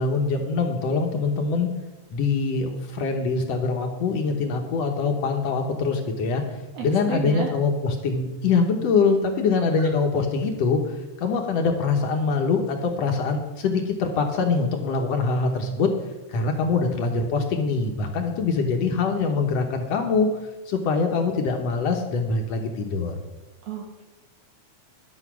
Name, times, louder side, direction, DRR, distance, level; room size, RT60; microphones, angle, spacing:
voice 1, 0.0-1.7 2.1-6.4 6.8-15.9 16.3-20.3 20.7-23.2, left 4 dB, 65° left, 4 dB, 2.0 m, -24 dB
voice 2, 6.7-7.5 9.8-9.9 23.6-24.0, right 7 dB, 65° right, 0 dB, 2.2 m, -32 dB
11.0 x 8.1 x 6.1 m, 1.1 s
omnidirectional pair, 3.4 m